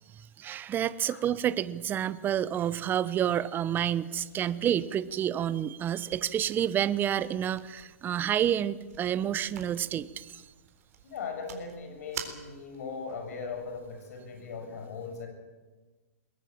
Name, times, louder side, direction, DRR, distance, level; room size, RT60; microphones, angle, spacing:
voice 1, 0.2-10.4, right 10 dB, 25° right, 17 dB, 0.8 m, -29 dB
sound 1, 4.2-14.1, right 8 dB, 70° right, 3.9 m, -49 dB
voice 2, 11.0-15.3, left 5 dB, 70° left, 5 dB, 7.1 m, -39 dB
22.0 x 18.0 x 8.9 m, 1.3 s
hypercardioid pair, 125°, 9 cm